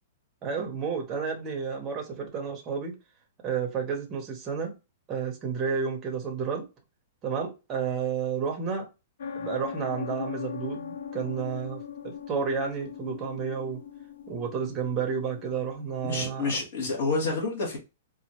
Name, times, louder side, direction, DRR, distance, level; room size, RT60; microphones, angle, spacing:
voice 1, 0.4-2.9 3.4-4.7 5.1-6.7 7.2-8.8 9.4-13.8 14.3-16.5, right 6 dB, 15° right, 0.7 m, -31 dB
sound 1, 9.2-16.6, left 6 dB, 70° left, 0.5 m, -39 dB
voice 2, 16.0-17.8, left 3 dB, 45° left, 1.7 m, -28 dB
4.1 x 2.5 x 2.9 m
hypercardioid pair, 175°, 0 cm